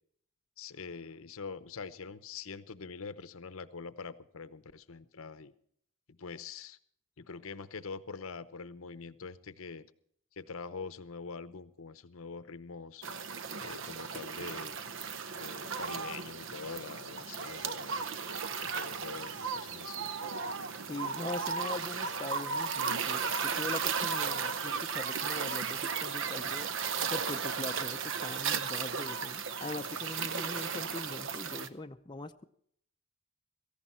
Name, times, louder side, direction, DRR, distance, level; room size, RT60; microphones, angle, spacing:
voice 1, 0.6-5.5 6.1-6.8 7.2-9.9 10.4-13.1 13.6-14.8 15.3-18.0 18.6-20.1 21.6-21.9, left 5 dB, 75° left, 14 dB, 0.8 m, -44 dB
sound 1, 13.0-31.7, right 6 dB, 60° right, 0.7 m, -35 dB
voice 2, 20.9-26.7 27.1-32.4, left 2 dB, 20° left, 6 dB, 0.5 m, -41 dB
17.0 x 15.0 x 4.4 m, 0.67 s
head